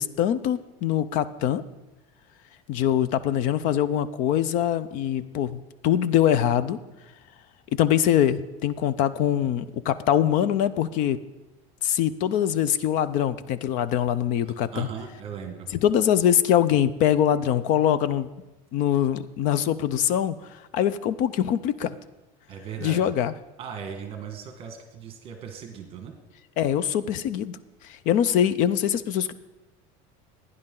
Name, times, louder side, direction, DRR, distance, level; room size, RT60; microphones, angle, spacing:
voice 1, 0.0-1.6 2.7-6.8 7.7-11.2 11.8-14.9 15.7-18.3 18.7-22.0 22.8-23.3 26.6-27.6 27.8-29.3, left 10 dB, 50° left, 16 dB, 0.5 m, -23 dB
voice 2, 14.5-15.7 22.5-23.1 23.6-26.1, right 7 dB, 35° right, 5 dB, 1.4 m, -38 dB
16.0 x 9.9 x 3.8 m, 1.0 s
cardioid pair, 160°, 17 cm